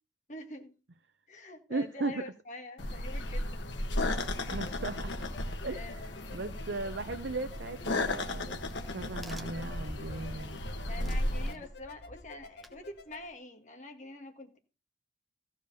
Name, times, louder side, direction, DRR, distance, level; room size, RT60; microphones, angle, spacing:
voice 1, 0.3-0.7 1.3-3.6 5.6-6.5 10.9-14.6, left 2 dB, 40° left, 1.8 m, -46 dB
voice 2, 1.7-2.2 4.5-5.3 5.6-5.8 6.3-8.6 8.9-10.6 11.0-11.5, right 3 dB, 70° right, 0.7 m, -37 dB
sound 1, 2.8-11.5, left 1 dB, 80° left, 1.4 m, -35 dB
sound 2, 4.5-13.2, left 4 dB, 60° left, 1.2 m, -52 dB
Crack, 8.7-13.3, equal, ahead, 1.0 m, -49 dB
14.5 x 5.1 x 6.8 m
head